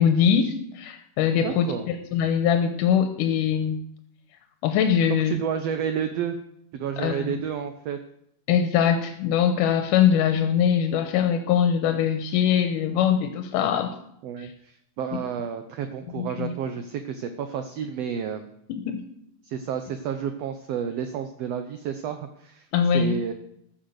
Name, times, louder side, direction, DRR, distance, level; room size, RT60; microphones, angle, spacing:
voice 1, 0.0-3.8 4.6-5.3 7.0-7.3 8.5-13.9 14.4-14.5 15.1-15.2 16.2-16.5 18.7-19.0 22.7-23.2, left 8 dB, 85° left, 7 dB, 2.4 m, -22 dB
voice 2, 1.4-1.9 5.1-6.4 6.7-8.0 13.6-13.9 14.2-18.4 19.4-22.7 22.9-23.3, right 8 dB, 70° right, 8 dB, 1.6 m, -31 dB
14.0 x 6.5 x 7.9 m, 0.73 s
omnidirectional pair, 3.6 m